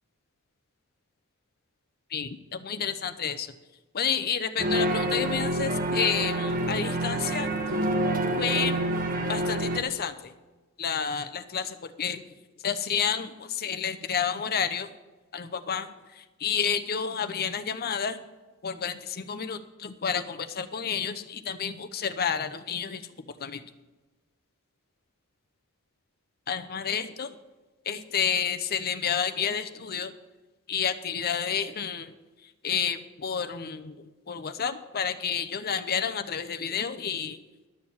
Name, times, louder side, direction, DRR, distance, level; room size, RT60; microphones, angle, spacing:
voice 1, 2.1-3.5 3.9-7.5 8.4-8.7 9.3-10.3 10.8-12.2 12.6-14.9 15.3-15.9 16.2-18.2 18.6-23.1 23.4-23.6 26.5-27.4 27.9-30.1 30.7-32.1 32.6-37.4, left 7 dB, 45° left, 10 dB, 0.7 m, -30 dB
sound 1, 4.6-9.8, right 1 dB, 40° right, 1.3 m, -27 dB
12.0 x 6.6 x 7.2 m, 1.2 s
head